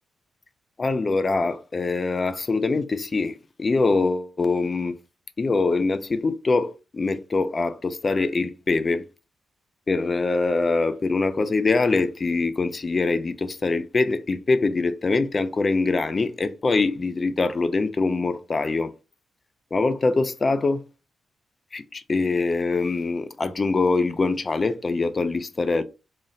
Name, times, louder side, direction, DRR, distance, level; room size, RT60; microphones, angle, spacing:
voice 1, 0.8-5.0 5.4-9.0 9.9-18.9 19.7-20.8 21.7-25.8, left 3 dB, 25° left, 0.3 m, -23 dB
3.9 x 2.1 x 3.7 m
wide cardioid pair, 160°, 0 cm